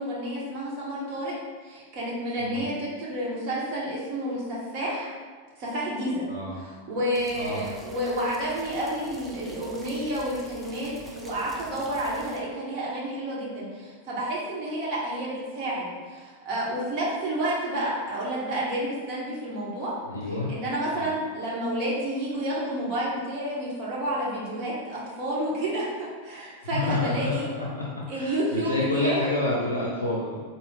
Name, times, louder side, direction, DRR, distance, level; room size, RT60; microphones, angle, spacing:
voice 1, 0.0-1.3 1.6-5.1 5.6-6.3 6.6-19.9 20.5-27.5 28.1-29.3, right 1 dB, 40° right, -7 dB, 0.9 m, -30 dB
sound 1, 7.1-12.4, equal, ahead, 0.4 m, -46 dB
voice 2, 20.1-20.5 20.9-21.1 26.7-30.4, left 2 dB, 85° left, -5 dB, 0.4 m, -28 dB
3.9 x 2.0 x 3.2 m, 1.5 s
figure-of-eight pair, 90°, 0 cm